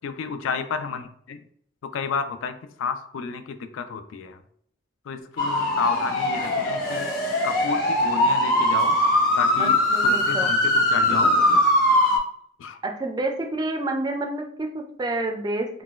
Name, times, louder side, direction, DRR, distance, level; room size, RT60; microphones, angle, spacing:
voice 1, 0.0-1.4 1.8-4.4 5.1-7.1 7.4-9.0 9.4-11.3 12.6-12.8, left 6 dB, 85° left, 10 dB, 0.3 m, -31 dB
sound 1, 5.4-12.2, left 1 dB, 45° left, 0.6 m, -21 dB
voice 2, 9.6-10.5 12.8-15.8, right 2 dB, 20° right, 4 dB, 0.3 m, -29 dB
3.9 x 2.2 x 2.3 m, 0.66 s
head